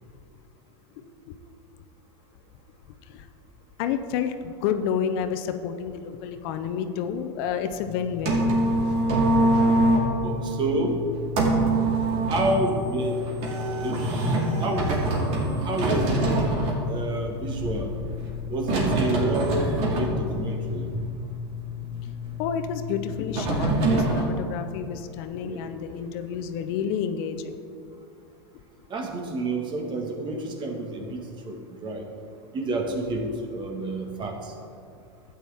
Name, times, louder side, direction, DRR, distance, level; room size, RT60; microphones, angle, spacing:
voice 1, 3.8-8.5 22.4-27.6, left 7 dB, 60° left, 9 dB, 0.7 m, -30 dB
sound 1, 7.8-24.2, right 1 dB, 50° right, 2.4 m, -25 dB
voice 2, 10.2-11.0 12.3-13.3 13.8-14.1 14.6-15.0 15.6-16.5 16.9-17.9 18.5-21.1 25.4-25.7 28.9-32.1 32.5-34.5, right 2 dB, 35° right, 3 dB, 1.6 m, -29 dB
12.5 x 9.1 x 3.5 m, 2.4 s
hypercardioid pair, 110°, 14 cm